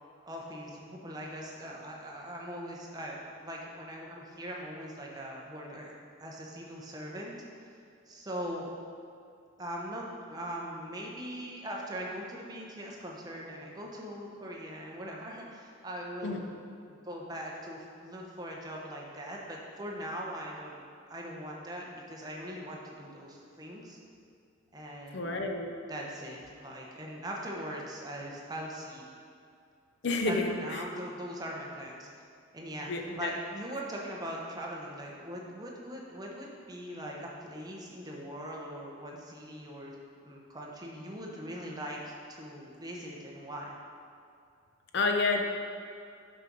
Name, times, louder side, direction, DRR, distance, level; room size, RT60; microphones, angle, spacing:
voice 1, 0.3-7.7 8.1-8.7 9.6-16.5 17.0-24.0 24.7-25.4 25.9-29.1 30.3-32.1 32.5-32.9 33.2-40.0 40.3-43.7, equal, 20° right, -2 dB, 0.9 m, -41 dB
voice 2, 25.1-25.7 30.0-30.8 32.9-33.3 44.9-45.4, left 3 dB, 55° left, 3 dB, 0.6 m, -30 dB
6.5 x 6.1 x 5.2 m, 2.4 s
head